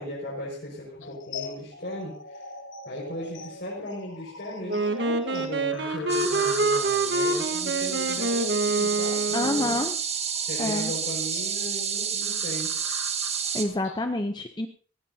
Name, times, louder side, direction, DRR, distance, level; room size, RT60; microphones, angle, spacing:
voice 1, 0.0-2.4 2.9-9.8 10.5-12.7, left 1 dB, 55° left, -5 dB, 5.6 m, -37 dB
sound 1, 1.0-14.1, left 5 dB, 80° left, 1.2 m, -43 dB
Wind instrument woodwind instrument, 4.7-9.9, right 3 dB, 60° right, 1.5 m, -26 dB
sound 2, 6.1-13.7, right 7 dB, 30° right, 1.8 m, -30 dB
voice 2, 9.3-10.0 10.6-10.9 13.5-14.7, left 1 dB, 20° left, 6 dB, 0.7 m, -27 dB
18.0 x 16.5 x 2.8 m, 0.41 s
head